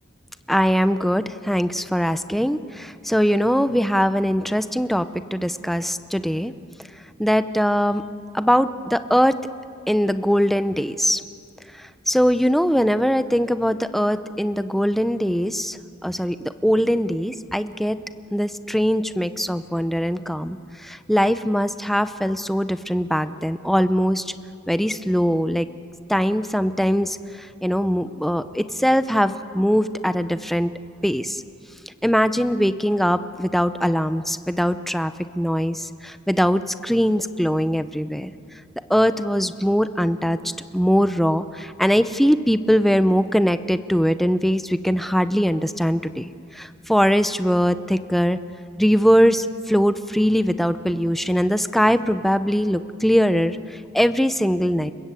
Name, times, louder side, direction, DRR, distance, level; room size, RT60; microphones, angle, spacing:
voice 1, 0.5-5.1 5.3-6.5 7.2-8.0 8.3-9.3 9.9-11.2 12.1-15.8 16.0-16.4 16.6-18.0 18.3-20.6 20.8-24.2 24.7-25.7 26.1-27.2 27.6-30.7 31.0-31.4 32.0-38.3 38.9-40.4 40.7-46.2 46.5-48.4 48.8-53.6 53.9-54.9, equal, ahead, 11 dB, 0.7 m, -21 dB
30.0 x 20.5 x 8.3 m, 2.5 s
head